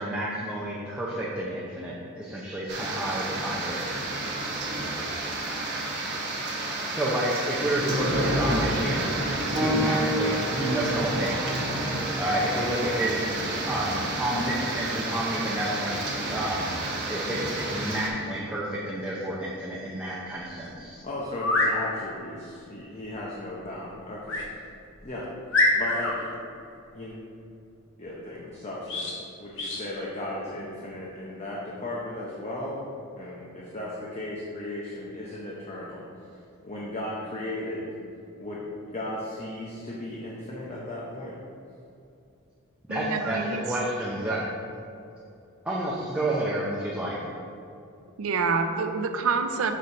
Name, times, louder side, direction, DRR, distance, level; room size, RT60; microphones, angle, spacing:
voice 1, 0.0-3.8 6.9-11.7 12.2-13.4 13.7-16.8 17.1-21.0 42.9-44.4 45.6-47.2, right 1 dB, 5° right, -7 dB, 0.6 m, -30 dB
sound 1, 2.7-18.1, right 2 dB, 50° right, 1.2 m, -30 dB
sound 2, 9.5-19.8 20.7-20.8 21.6-21.7, right 1 dB, 20° right, 1.1 m, -34 dB
voice 2, 21.0-24.4 25.0-25.3 25.7-26.3 26.9-27.2 28.0-32.8 33.2-37.8 38.4-41.4, left 1 dB, 30° left, -5 dB, 0.8 m, -36 dB
sound 3, 21.3-21.7 24.3-24.5 25.0-25.1 25.5-26.1 28.9-29.2 29.6-29.8, left 2 dB, 60° left, 1.1 m, -24 dB
voice 3, 42.9-43.6 48.2-49.8, right 4 dB, 65° right, 6 dB, 0.5 m, -27 dB
6.4 x 4.2 x 5.3 m, 2.6 s
head